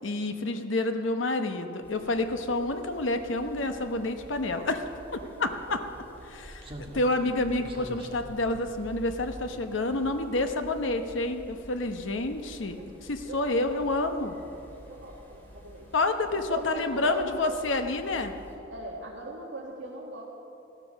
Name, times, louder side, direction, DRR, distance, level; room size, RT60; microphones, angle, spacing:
voice 1, 0.0-4.8 5.1-5.8 6.3-14.3 15.9-18.3, left 2 dB, 75° left, 7 dB, 1.0 m, -29 dB
sound 1, 1.8-18.6, equal, 10° left, 2.6 m, -49 dB
Slam, 5.2-5.3 6.6-10.1 10.4-10.6, equal, 30° right, 1.6 m, -46 dB
voice 2, 13.2-14.1 14.8-15.9 16.5-17.7 18.7-20.2, right 2 dB, 75° right, -5 dB, 1.9 m, -41 dB
15.5 x 13.0 x 6.4 m, 2.8 s
head